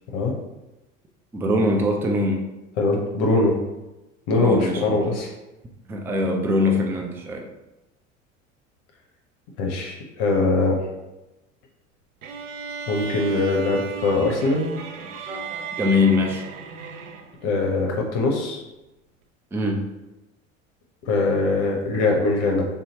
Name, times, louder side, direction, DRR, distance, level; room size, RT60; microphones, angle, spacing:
voice 1, 1.3-2.4 4.4-5.1 5.9-7.4 15.3-16.4 19.5-19.8, left 2 dB, 5° right, 1 dB, 0.3 m, -23 dB
voice 2, 2.8-3.6 4.3-5.3 9.6-10.8 12.9-14.6 17.4-18.6 21.1-22.7, left 3 dB, 50° left, 0 dB, 0.7 m, -22 dB
sound 1, 12.2-17.5, right 5 dB, 75° right, 0.5 m, -35 dB
3.6 x 2.8 x 2.8 m, 0.99 s
figure-of-eight pair, 70°, 38 cm